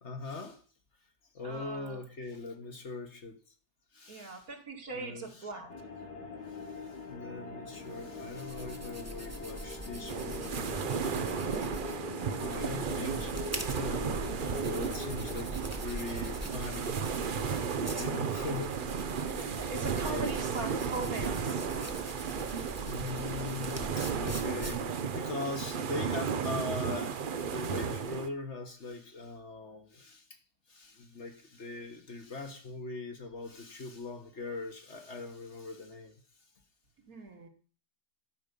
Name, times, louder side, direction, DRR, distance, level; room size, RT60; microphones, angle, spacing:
voice 1, 0.0-0.6 1.3-3.4 3.9-4.5 4.9-5.5 6.5-12.0 12.3-14.4 14.6-17.7 18.0-18.8 20.1-20.5 22.8-30.4 30.7-36.2, left 3 dB, 50° left, 1.6 m, -41 dB
voice 2, 1.4-2.0 4.1-5.7 17.7-18.2 19.2-21.6 37.1-37.5, right 3 dB, 65° right, 2.5 m, -41 dB
sound 1, 5.7-15.4, left 3 dB, 80° left, 1.8 m, -43 dB
sound 2, 7.8-25.2, right 1 dB, 10° right, 1.0 m, -43 dB
sound 3, 10.1-28.3, right 6 dB, 50° right, 0.6 m, -34 dB
12.0 x 5.2 x 6.8 m
omnidirectional pair, 1.6 m